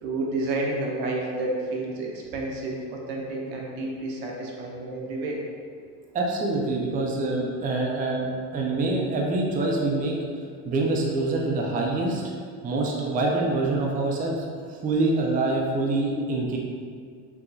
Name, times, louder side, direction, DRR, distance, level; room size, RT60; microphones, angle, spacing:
voice 1, 0.0-5.4, right 2 dB, 75° right, -2 dB, 0.8 m, -30 dB
voice 2, 6.1-10.2 10.6-12.2 12.6-14.4 14.7-16.6, right 2 dB, 20° right, -1 dB, 0.4 m, -25 dB
4.7 x 2.6 x 2.3 m, 2.1 s
supercardioid pair, 110°, 39 cm